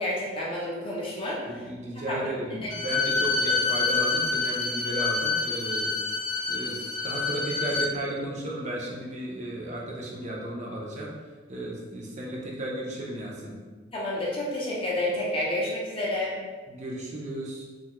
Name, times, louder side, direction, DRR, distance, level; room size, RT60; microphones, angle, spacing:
voice 1, 0.0-1.6 2.1-2.3 2.6-2.7 13.9-16.3, left 1 dB, 30° left, -5 dB, 0.5 m, -29 dB
voice 2, 1.5-5.9 6.5-11.1 11.5-13.6 16.7-17.7, right 1 dB, 35° right, -3 dB, 0.5 m, -34 dB
Bowed string instrument, 2.7-7.9, left 4 dB, 85° left, 0.5 m, -27 dB
2.6 x 2.3 x 2.9 m, 1.4 s
head